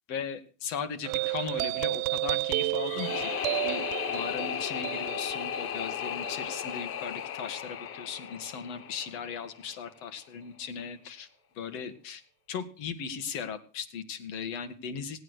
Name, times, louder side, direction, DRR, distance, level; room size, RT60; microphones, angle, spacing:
voice 1, 0.1-3.3 3.6-11.3 11.5-12.2 12.5-15.2, left 6 dB, 75° left, 9 dB, 2.2 m, -37 dB
sound 1, 1.0-7.9, right 22 dB, 75° right, 0.6 m, -32 dB
sound 2, 2.8-9.7, left 10 dB, 30° left, 0.6 m, -35 dB
17.0 x 9.4 x 6.3 m, 0.38 s
cardioid pair, 135°, 42 cm